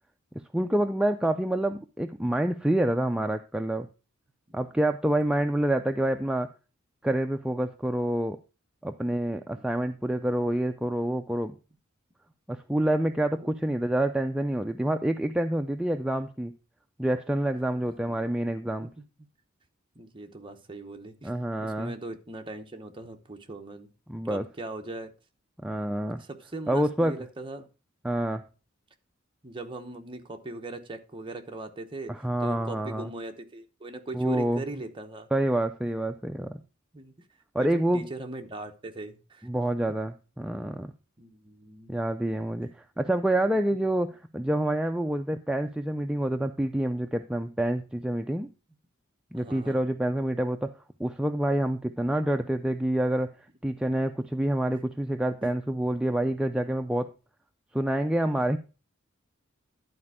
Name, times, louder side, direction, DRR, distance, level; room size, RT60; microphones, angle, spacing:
voice 1, 0.5-3.9 4.5-6.5 7.0-8.4 8.8-11.6 12.5-16.5 17.0-18.9 21.2-21.9 24.1-24.5 25.6-26.2 26.7-27.2 28.0-28.4 32.1-33.1 34.1-34.6 35.3-36.6 37.5-38.1 39.4-40.9 41.9-42.7 43.0-48.5 49.3-50.7 51.0-53.3 53.6-57.1 57.7-58.6, right 1 dB, 5° right, 6 dB, 0.3 m, -27 dB
voice 2, 9.3-9.7 13.4-13.5 17.9-18.3 19.0-19.1 19.9-21.3 21.6-23.9 24.3-25.1 26.2-27.7 29.4-32.1 32.4-35.3 36.9-37.3 37.6-39.5 41.2-41.9 49.3-49.8 55.4-55.5, right 2 dB, 25° right, 4 dB, 0.9 m, -40 dB
11.0 x 4.3 x 4.8 m, 0.33 s
head